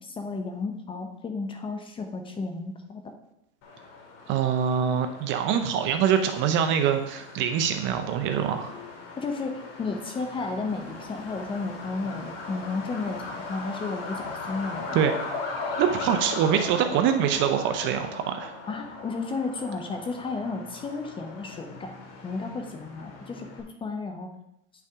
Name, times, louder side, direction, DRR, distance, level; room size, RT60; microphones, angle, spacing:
voice 1, 0.0-3.0 9.2-15.0 18.7-22.0 22.2-24.3, left 3 dB, 15° left, 5 dB, 0.6 m, -33 dB
Truck, 3.6-23.6, left 3 dB, 50° left, 2.1 m, -39 dB
voice 2, 4.3-8.8 14.9-15.1 15.8-18.5, right 8 dB, 35° right, 7 dB, 0.6 m, -24 dB
9.3 x 5.8 x 3.5 m, 0.83 s
supercardioid pair, 135°, 35 cm